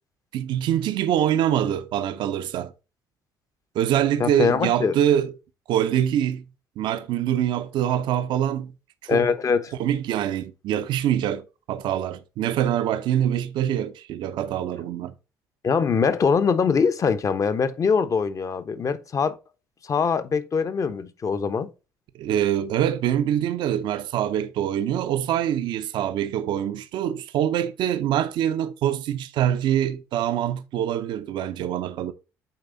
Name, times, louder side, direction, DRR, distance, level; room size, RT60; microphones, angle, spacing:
voice 1, 0.3-2.7 3.7-5.3 5.7-6.5 6.8-8.8 9.0-9.3 9.8-15.1 22.1-32.1, right 10 dB, 70° right, 0.7 m, -24 dB
voice 2, 4.2-5.0 9.1-9.7 15.6-19.4 19.8-21.7, left 5 dB, 40° left, 1.0 m, -23 dB
8.7 x 3.3 x 3.9 m
supercardioid pair, 70°, 8 cm